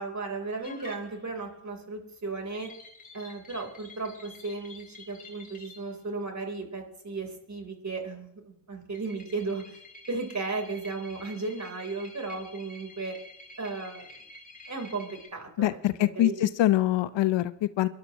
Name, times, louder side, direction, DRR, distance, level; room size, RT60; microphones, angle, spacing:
voice 1, 0.0-2.7 3.1-9.8 10.1-13.2 13.6-14.1 14.7-16.5, right 3 dB, 35° right, 3 dB, 3.6 m, -35 dB
sound 1, 0.6-1.5 2.5-5.9 8.9-15.3, left 2 dB, 15° left, 3.0 m, -49 dB
voice 2, 15.6-17.9, left 14 dB, 65° left, 16 dB, 0.7 m, -24 dB
24.5 x 11.5 x 3.0 m, 0.77 s
hypercardioid pair, 45°, 47 cm